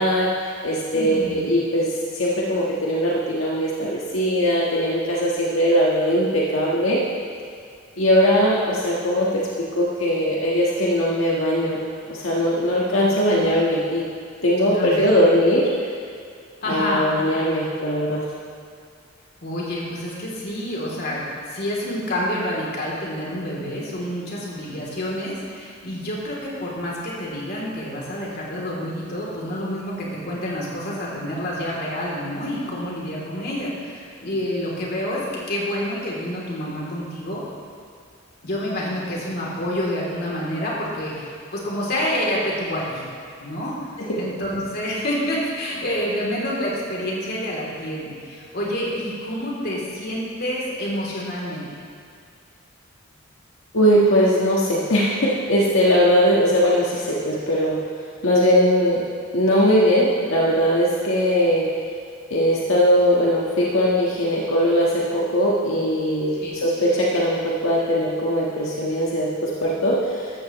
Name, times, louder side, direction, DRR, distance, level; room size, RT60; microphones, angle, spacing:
voice 1, 0.0-7.0 8.0-11.8 12.1-14.0 14.4-15.7 16.7-18.2 44.0-44.2 53.7-57.8 58.2-59.0 59.3-61.7 62.3-70.3, equal, 85° left, -5 dB, 1.5 m, -20 dB
voice 2, 0.9-1.4 13.4-13.5 14.6-15.0 16.6-17.0 19.4-35.2 35.5-37.4 38.4-43.0 43.4-43.7 44.1-51.7 66.4-66.6, equal, 55° left, -4 dB, 3.1 m, -28 dB
15.0 x 13.0 x 3.1 m, 2.3 s
head